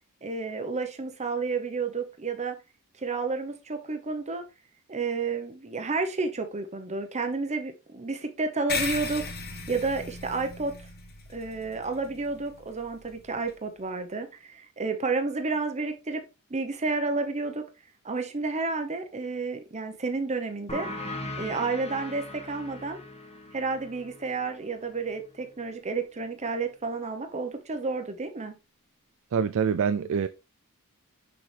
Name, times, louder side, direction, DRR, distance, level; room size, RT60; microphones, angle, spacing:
voice 1, 0.2-2.6 3.0-4.4 4.9-9.3 9.7-10.7 11.3-16.2 16.5-17.7 18.0-20.9 21.4-23.0 23.5-28.6, right 4 dB, 30° right, 0.9 m, -31 dB
sound 1, 8.7-13.5, left 5 dB, 45° left, 1.2 m, -37 dB
sound 2, 20.7-25.9, left 1 dB, 30° left, 1.3 m, -40 dB
voice 2, 29.3-30.3, right 6 dB, 65° right, 0.4 m, -25 dB
6.4 x 5.8 x 3.3 m
head